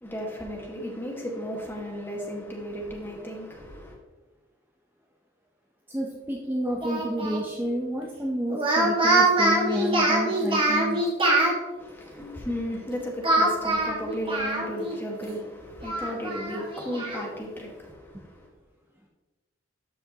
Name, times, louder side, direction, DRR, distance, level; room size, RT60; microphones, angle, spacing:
voice 1, 0.0-4.0 11.8-18.5, equal, 10° left, 1.6 m, -35 dB
voice 2, 5.9-11.0 18.1-18.3, equal, 10° right, 0.7 m, -30 dB
Speech, 6.8-7.4 8.5-11.5 13.2-15.0 15.3-15.4 15.8-17.2, right 2 dB, 25° right, 1.7 m, -24 dB
12.5 x 5.7 x 2.9 m
head